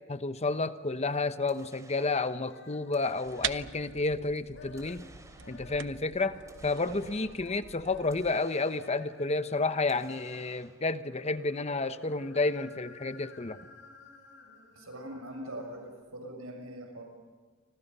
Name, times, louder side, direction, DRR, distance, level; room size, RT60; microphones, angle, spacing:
voice 1, 0.1-5.0 5.5-6.4 6.6-13.6, left 3 dB, 30° left, 11 dB, 1.0 m, -31 dB
sound 1, 1.5-2.4 2.9-4.0 4.8-5.8 6.5-7.5 8.1-9.2 9.9-11.0, right 2 dB, 15° right, 3.2 m, -57 dB
sound 2, 2.2-4.0 4.4-5.1 5.3-10.5 10.9-15.9, left 3 dB, 60° left, 7.1 m, -53 dB
sound 3, 3.3-8.3, right 10 dB, 60° right, 0.8 m, -42 dB
voice 2, 14.7-17.0, right 1 dB, 75° right, 3 dB, 6.5 m, -42 dB
30.0 x 25.5 x 5.5 m, 1.5 s
head